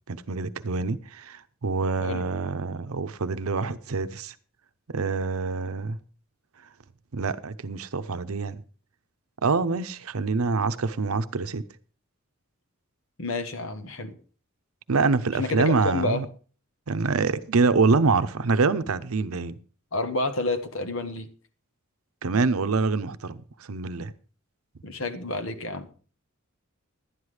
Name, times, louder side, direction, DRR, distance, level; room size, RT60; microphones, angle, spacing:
voice 1, 0.1-4.3 4.9-6.0 7.1-8.6 9.4-11.6 14.9-16.3 16.9-19.5 22.2-23.4 23.7-24.1, right 4 dB, 80° right, 0.7 m, -25 dB
voice 2, 2.0-2.3 13.2-14.1 15.4-16.2 19.9-21.3 24.8-25.9, left 2 dB, 70° left, 1.4 m, -29 dB
11.5 x 9.7 x 4.9 m
head